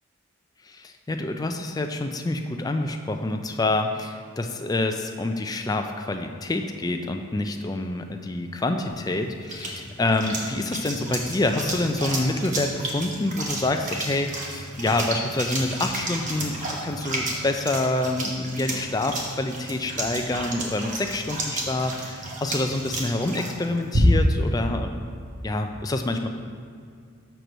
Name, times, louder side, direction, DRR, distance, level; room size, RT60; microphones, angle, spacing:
voice 1, 0.6-25.0 25.4-26.3, left 2 dB, 15° left, 5 dB, 0.4 m, -27 dB
sound 1, 8.9-24.4, right 1 dB, 35° right, 1.0 m, -31 dB
6.6 x 4.6 x 6.2 m, 2.3 s
head